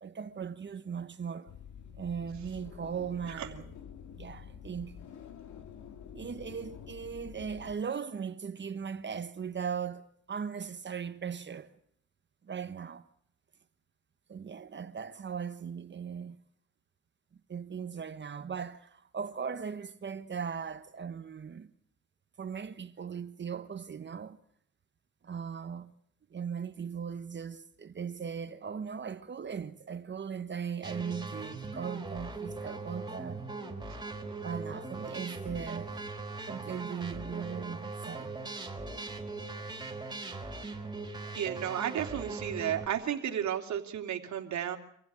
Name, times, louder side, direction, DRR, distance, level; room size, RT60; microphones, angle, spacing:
voice 1, 0.0-1.5 1.9-3.7 4.1-5.0 6.1-11.7 12.4-13.0 14.3-16.4 17.5-21.7 22.4-24.4 25.2-25.9 26.3-33.4 34.4-36.1 36.4-38.4, right 7 dB, 35° right, 1.3 m, -38 dB
sound 1, 1.5-7.8, left 8 dB, 75° left, 2.2 m, -48 dB
sound 2, 30.8-42.9, right 3 dB, 15° right, 4.0 m, -40 dB
voice 2, 41.3-44.8, right 10 dB, 65° right, 3.0 m, -33 dB
26.5 x 15.5 x 8.8 m
cardioid pair, 90°, 30 cm